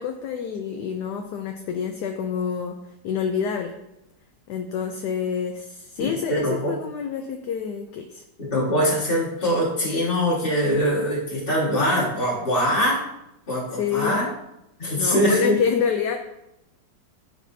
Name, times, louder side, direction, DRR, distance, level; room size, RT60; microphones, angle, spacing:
voice 1, 0.0-3.8 4.5-8.2 13.7-14.2 15.0-16.2, left 7 dB, 70° left, 5 dB, 1.1 m, -27 dB
voice 2, 6.0-6.7 8.4-13.0 13.5-14.3 14.8-15.5, equal, 30° left, -5 dB, 1.9 m, -23 dB
10.5 x 4.2 x 2.7 m, 0.85 s
omnidirectional pair, 2.0 m